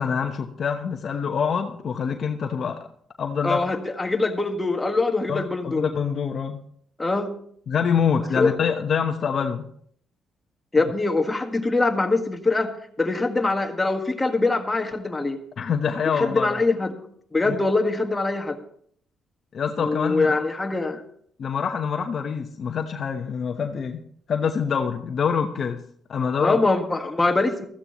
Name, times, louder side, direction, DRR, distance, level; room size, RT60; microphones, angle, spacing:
voice 1, 0.0-2.9 3.2-3.6 5.3-6.6 7.7-9.7 15.6-16.6 17.4-17.6 19.5-20.3 21.4-24.0 24.3-25.8 26.1-26.6, left 6 dB, 55° left, 4 dB, 1.0 m, -25 dB
voice 2, 3.4-5.9 7.0-7.3 8.4-8.5 10.7-12.7 13.0-15.4 16.2-16.9 17.3-18.6 19.8-21.0 26.4-27.7, left 3 dB, 20° left, 4 dB, 1.6 m, -23 dB
15.5 x 14.0 x 3.0 m, 0.63 s
cardioid pair, 90°, 0 cm